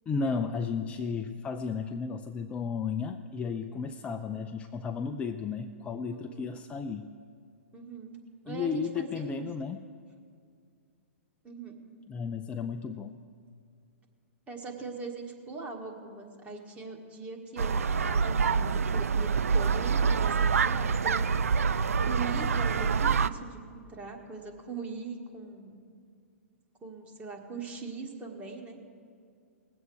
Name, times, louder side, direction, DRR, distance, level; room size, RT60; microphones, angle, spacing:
voice 1, 0.1-7.1 8.5-9.9 12.1-13.2, left 5 dB, 15° left, 6 dB, 0.4 m, -33 dB
voice 2, 6.1-6.5 7.7-8.2 8.4-9.5 11.4-11.7 14.5-17.8 18.0-21.3 22.1-25.7 26.8-28.8, right 4 dB, 15° right, 1 dB, 1.7 m, -41 dB
sound 1, 17.6-23.3, right 5 dB, 75° right, 0.4 m, -26 dB
20.0 x 8.0 x 4.8 m, 2.2 s
figure-of-eight pair, 115°, 8 cm